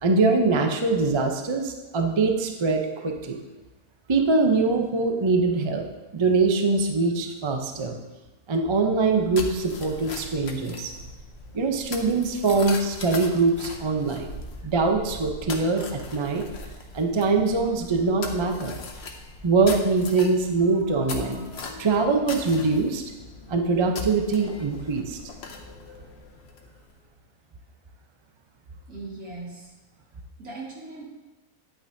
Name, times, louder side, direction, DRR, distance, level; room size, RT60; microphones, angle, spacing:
voice 1, 0.0-3.4 4.1-5.8 6.1-8.0 8.5-10.9 11.5-14.3 14.6-16.4 16.9-18.8 19.4-23.0 23.5-25.2, right 3 dB, 35° right, 3 dB, 0.4 m, -23 dB
sound 1, 9.0-26.9, left 3 dB, 50° left, 1.0 m, -40 dB
voice 2, 28.9-29.7 30.4-31.1, right 3 dB, 75° right, -4 dB, 2.5 m, -39 dB
9.9 x 8.7 x 2.7 m, 1.1 s
omnidirectional pair, 1.6 m